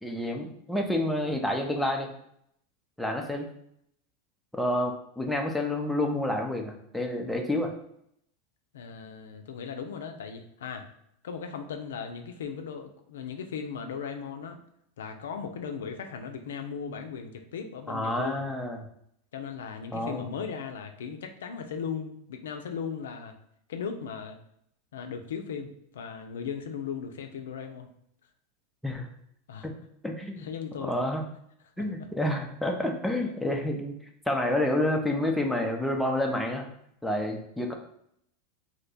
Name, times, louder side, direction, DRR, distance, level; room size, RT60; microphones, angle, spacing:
voice 1, 0.0-2.1 3.0-3.5 4.5-7.7 17.9-18.8 19.9-20.2 28.8-29.1 29.6-29.7 30.0-30.5 30.8-31.3 31.8-33.9 34.3-36.7 37.0-37.7, left 1 dB, 5° left, 1 dB, 0.5 m, -29 dB
voice 2, 8.7-10.8 11.2-14.6 15.0-18.4 19.3-23.3 23.7-24.4 24.9-27.9 29.5-29.7 30.4-30.9 31.8-31.9, left 6 dB, 85° left, 5 dB, 0.4 m, -37 dB
2.8 x 2.2 x 3.9 m, 0.72 s
hypercardioid pair, 115°, 0 cm